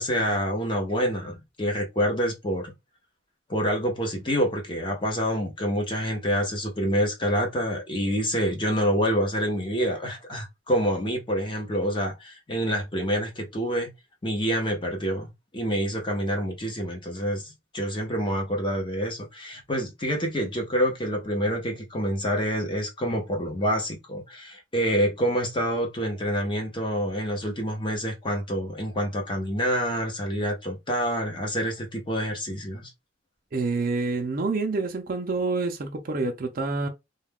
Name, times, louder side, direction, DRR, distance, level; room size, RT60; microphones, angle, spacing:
voice 1, 0.0-2.7 3.5-13.9 14.2-32.9, equal, 25° left, 0.8 m, -27 dB
voice 2, 33.5-36.9, right 3 dB, 45° right, 0.5 m, -27 dB
2.3 x 2.2 x 3.4 m
head